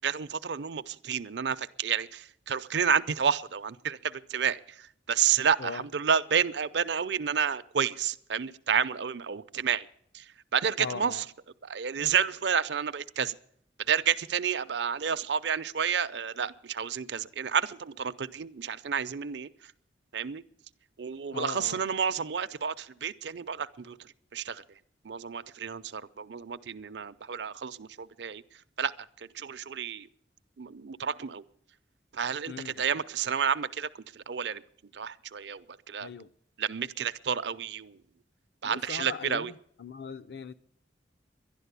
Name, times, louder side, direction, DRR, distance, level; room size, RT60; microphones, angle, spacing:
voice 1, 0.0-9.9 10.1-11.2 11.6-13.3 13.9-19.5 20.1-20.4 21.0-24.6 25.0-28.4 28.8-28.9 29.2-30.1 30.6-31.4 32.1-34.6 34.9-36.1 36.6-38.0 38.6-39.5, right 7 dB, 70° right, 0.6 m, -30 dB
voice 2, 10.8-11.2 21.3-21.8 32.5-32.9 36.0-36.3 38.6-39.5 39.8-40.5, left 5 dB, 65° left, 0.5 m, -39 dB
12.0 x 11.5 x 8.1 m
head